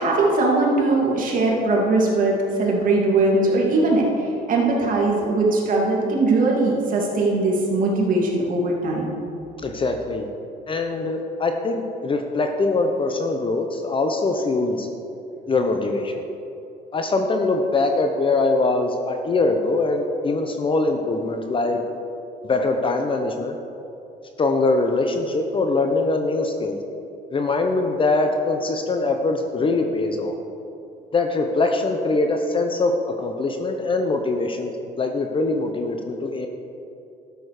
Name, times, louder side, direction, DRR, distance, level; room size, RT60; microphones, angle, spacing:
voice 1, 0.0-9.1, right 2 dB, 55° right, -2 dB, 2.7 m, -20 dB
voice 2, 9.6-10.3 10.7-14.9 15.5-16.2 16.9-21.8 22.4-23.6 24.4-26.8 27.3-30.3 31.1-32.9 33.2-34.7 35.0-36.5, left 3 dB, 30° left, 4 dB, 0.8 m, -22 dB
12.5 x 6.9 x 5.0 m, 2.7 s
cardioid pair, 110°, 17 cm